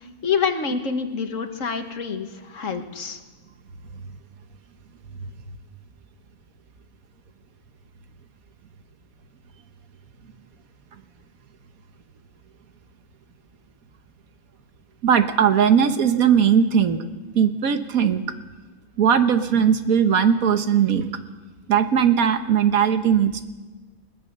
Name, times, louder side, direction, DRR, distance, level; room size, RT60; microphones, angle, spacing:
voice 1, 0.2-3.2, left 6 dB, 60° left, 7 dB, 1.8 m, -26 dB
voice 2, 15.0-17.0 17.3-18.2 19.0-21.1 21.7-23.4, right 8 dB, 80° right, 9 dB, 1.6 m, -19 dB
21.0 x 19.5 x 6.7 m, 1.3 s
omnidirectional pair, 1.5 m